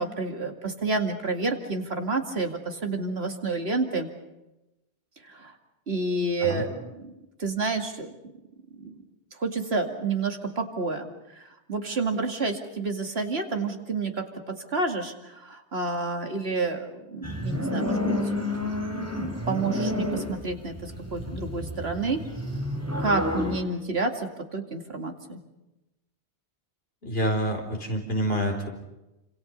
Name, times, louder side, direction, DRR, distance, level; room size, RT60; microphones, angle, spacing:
voice 1, 0.0-4.1 5.2-5.5 5.9-8.2 8.7-9.0 9.3-18.1 18.6-19.1 19.5-22.2 23.0-25.4, right 3 dB, 65° right, 4 dB, 2.7 m, -30 dB
sound 1, 17.2-23.6, left 1 dB, 15° right, 4.2 m, -30 dB
voice 2, 27.0-28.7, equal, 60° left, 1 dB, 4.7 m, -27 dB
28.0 x 26.5 x 5.5 m, 0.97 s
omnidirectional pair, 1.1 m